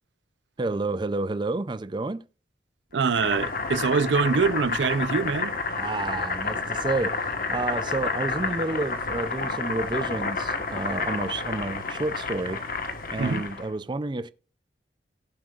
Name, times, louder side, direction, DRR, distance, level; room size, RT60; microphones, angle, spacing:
voice 1, 0.6-2.2 5.8-12.6 13.1-14.3, right 2 dB, 25° right, 0.4 m, -30 dB
voice 2, 2.9-5.5 13.2-13.4, right 5 dB, 90° right, 0.5 m, -24 dB
Boiling, 3.0-13.7, left 4 dB, 55° left, 1.3 m, -30 dB
18.0 x 7.6 x 2.4 m
head